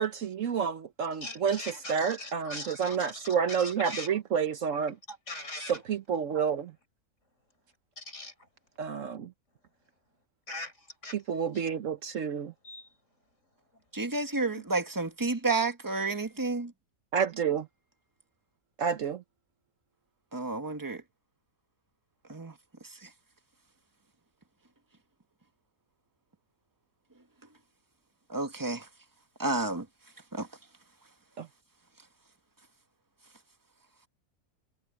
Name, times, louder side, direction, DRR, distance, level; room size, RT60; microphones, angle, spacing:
voice 1, 0.0-5.0 5.7-6.7 8.8-9.3 11.1-12.5 17.1-17.7 18.8-19.2 31.4-31.5, right 7 dB, 65° right, 1.2 m, -29 dB
voice 2, 1.2-4.1 5.1-5.8 8.0-8.3 10.5-10.7 11.0-11.1 11.5-11.6 12.6-12.9, left 2 dB, 55° left, 6.3 m, -41 dB
voice 3, 13.9-16.7 20.3-21.0 22.3-22.5 22.9-23.1 28.3-28.9 29.4-29.8 30.3-30.5, right 3 dB, 15° right, 1.7 m, -30 dB
omnidirectional pair, 1.5 m